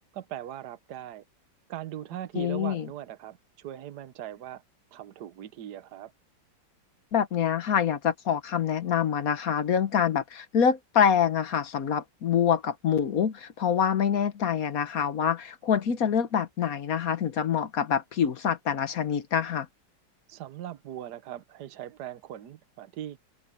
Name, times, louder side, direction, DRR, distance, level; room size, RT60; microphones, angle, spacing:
voice 1, 0.1-1.2 1.7-4.6 4.9-6.1 20.3-23.2, right 12 dB, 65° right, 1.5 m, -40 dB
voice 2, 2.3-2.9 7.1-19.7, left 8 dB, 55° left, 1.3 m, -26 dB
open air
omnidirectional pair, 2.0 m